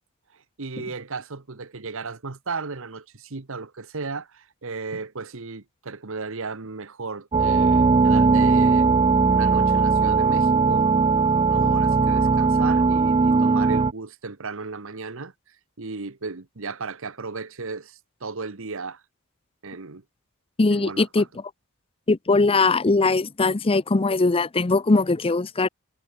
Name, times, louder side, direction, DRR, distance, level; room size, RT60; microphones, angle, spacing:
voice 1, 0.3-8.9 9.2-10.9 11.4-19.0 19.6-20.0 20.7-21.3, right 4 dB, 65° right, 1.3 m, -35 dB
sound 1, 7.3-13.9, right 4 dB, 25° right, 0.4 m, -19 dB
voice 2, 20.6-21.2 22.1-25.7, left 3 dB, 25° left, 0.6 m, -20 dB
head